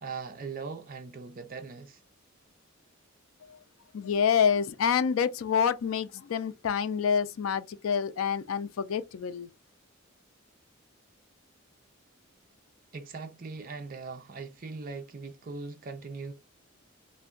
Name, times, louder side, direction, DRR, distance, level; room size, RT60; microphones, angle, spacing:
voice 1, 0.0-2.0 12.9-16.3, right 4 dB, 45° right, 0.5 m, -40 dB
voice 2, 3.9-9.5, left 7 dB, 75° left, 0.4 m, -27 dB
2.5 x 2.2 x 3.6 m
head